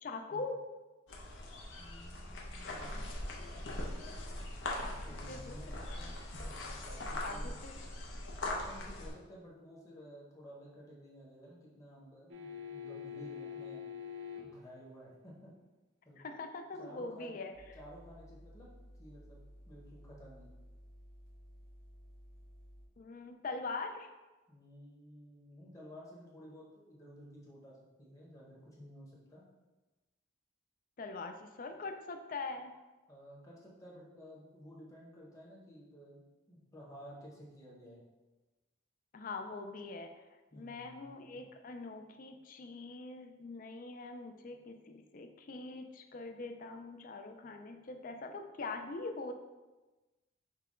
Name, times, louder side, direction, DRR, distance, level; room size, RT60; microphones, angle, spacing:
voice 1, 0.0-0.6 4.8-5.6 5.9-6.1 7.2-7.7 16.2-17.5 23.0-24.1 31.0-32.7 39.1-40.2 40.5-49.3, left 3 dB, 45° left, 6 dB, 0.4 m, -43 dB
sound 1, 1.1-9.1, left 1 dB, 70° left, 0.7 m, -41 dB
voice 2, 1.8-3.1 4.8-7.6 8.4-13.8 14.4-15.5 16.0-16.2 16.8-17.4 17.7-18.7 19.0-19.4 19.7-20.5 24.5-29.4 33.1-36.2 36.5-38.0 40.5-41.4, equal, 15° left, -4 dB, 0.9 m, -53 dB
sound 2, 12.3-14.7 17.3-17.4, left 8 dB, 65° right, 0.6 m, -44 dB
sound 3, 17.5-22.9, equal, 85° left, 1.1 m, -55 dB
5.6 x 2.2 x 3.7 m, 1.2 s
head